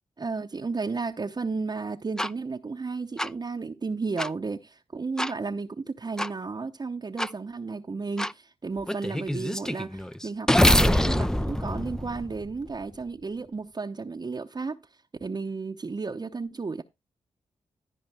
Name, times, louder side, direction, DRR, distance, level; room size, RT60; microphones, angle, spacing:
voice 1, 0.2-14.8 15.2-16.8, right 4 dB, 35° right, 0.8 m, -33 dB
sound 1, 2.2-2.3 3.2-3.3 4.2-4.3 5.2-5.3 6.2-6.3 7.2-7.3 8.2-8.3 8.9-12.8, left 1 dB, 5° left, 0.5 m, -24 dB
14.0 x 4.9 x 4.8 m
supercardioid pair, 45°, 12 cm